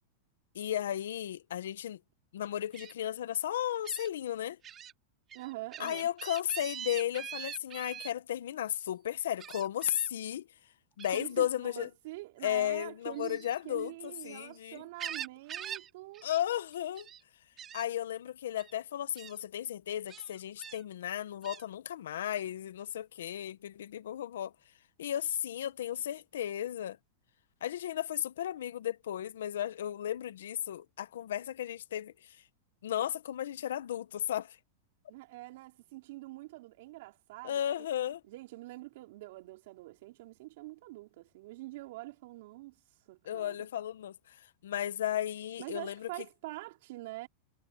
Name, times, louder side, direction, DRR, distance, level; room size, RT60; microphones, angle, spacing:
voice 1, 0.5-2.0 2.3-4.6 5.8-10.5 11.0-11.9 12.4-14.9 16.2-17.1 17.7-24.5 25.0-27.0 27.6-32.4 32.8-34.6 37.4-38.2 43.2-46.1, left 11 dB, 85° left, 1.4 m, -34 dB
Gull seagull, 2.7-2.9 3.8-4.1 4.6-4.9 5.3-8.1 9.4-10.1 11.0-11.3 13.1-14.4 14.8-15.9 16.1-16.4 16.7-17.2 17.6-17.8 18.6-18.7 19.2-19.3 20.1-20.8 21.4-21.6, right 9 dB, 25° right, 3.9 m, -43 dB
voice 2, 5.3-6.1 11.1-16.3 35.1-37.6 38.3-42.8 43.1-43.7 45.6-47.3, right 20 dB, 65° right, 4.9 m, -45 dB
supercardioid pair, 135°, 0 cm